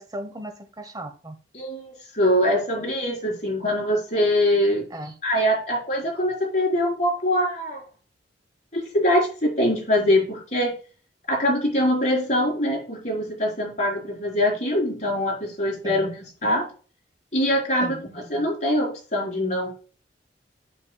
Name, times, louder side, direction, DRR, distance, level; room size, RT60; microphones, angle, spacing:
voice 1, 0.0-1.4 4.9-5.1 15.8-16.1 17.8-18.0, right 1 dB, 25° right, 1.1 m, -36 dB
voice 2, 1.5-4.8 5.2-7.8 8.7-10.7 11.3-16.7 17.3-19.7, left 1 dB, 45° left, 4.2 m, -23 dB
8.7 x 6.9 x 2.3 m
head